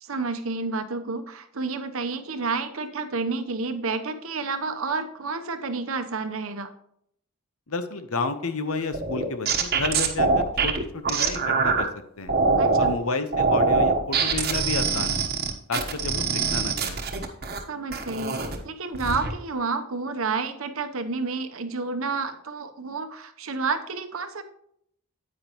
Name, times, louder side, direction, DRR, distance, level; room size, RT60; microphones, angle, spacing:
voice 1, 0.0-6.7 12.6-12.9 17.7-18.4 18.6-24.4, right 4 dB, 70° right, 8 dB, 0.9 m, -30 dB
voice 2, 7.7-10.3 10.6-11.9 12.2-12.3 12.8-15.2 15.7-17.0, left 3 dB, 80° left, 9 dB, 1.0 m, -30 dB
sound 1, 8.9-11.8 12.3-12.9 13.3-17.6 17.9-18.6 18.9-19.3, right 4 dB, 45° right, 1.1 m, -23 dB
9.6 x 8.9 x 3.0 m, 0.71 s
head